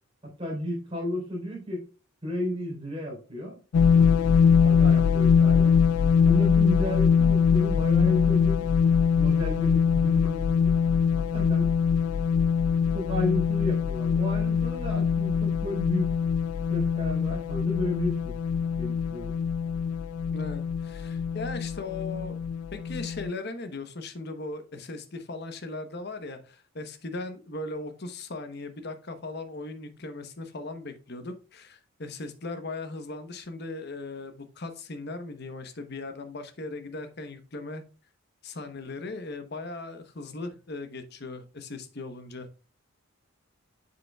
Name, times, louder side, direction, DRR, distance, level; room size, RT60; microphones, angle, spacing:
voice 1, 0.2-1.9 2.2-3.6 3.9-4.2 4.6-5.8 6.2-8.7 9.1-10.7 11.1-11.8 12.9-16.2 16.7-18.4 18.8-19.3, equal, 25° right, -2 dB, 3.6 m, -33 dB
sound 1, 3.7-23.3, left 6 dB, 90° left, 0.3 m, -23 dB
voice 2, 20.3-22.4 22.7-37.8 38.4-42.5, left 2 dB, 50° left, 8 dB, 0.9 m, -38 dB
7.8 x 6.8 x 2.3 m, 0.36 s
head